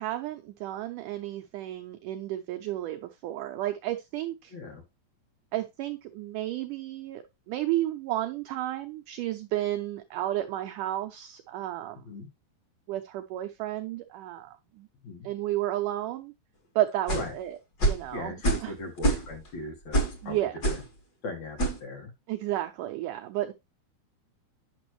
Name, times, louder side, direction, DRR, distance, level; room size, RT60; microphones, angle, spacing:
voice 1, 0.0-4.5 5.5-12.2 12.9-14.9 15.2-16.3 16.8-18.3 18.6-18.7 20.2-20.5 22.3-23.5, right 14 dB, 85° right, 7 dB, 1.8 m, -32 dB
voice 2, 4.5-4.8 12.0-12.3 15.0-15.3 17.1-17.3 18.1-20.8 21.2-22.1, left 2 dB, 60° left, 3 dB, 2.2 m, -38 dB
sound 1, 17.1-17.3 17.8-18.1 18.4-18.7 19.0-19.5 19.9-20.2 20.6-20.9 21.6-21.8, right 2 dB, 40° left, 1.5 m, -25 dB
9.2 x 6.1 x 3.1 m, 0.24 s
omnidirectional pair, 4.4 m